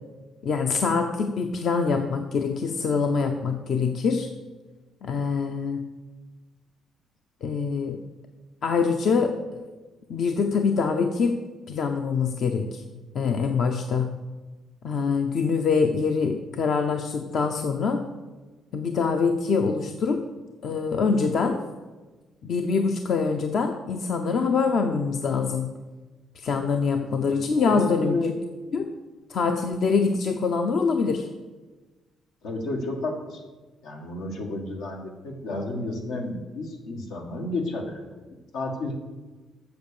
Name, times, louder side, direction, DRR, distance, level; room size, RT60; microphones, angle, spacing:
voice 1, 0.4-4.3 5.0-5.8 7.4-8.0 8.6-9.6 10.1-11.4 11.7-12.8 13.1-14.1 14.8-18.1 18.7-20.2 20.6-21.6 22.4-25.7 26.4-28.2 28.7-28.9 29.3-31.3, left 5 dB, 60° left, 5 dB, 0.7 m, -24 dB
voice 2, 27.3-28.3 32.4-33.4 33.8-38.0 38.5-39.0, left 2 dB, 90° left, 2 dB, 1.7 m, -31 dB
8.0 x 7.0 x 6.9 m, 1.2 s
cardioid pair, 90°, 0 cm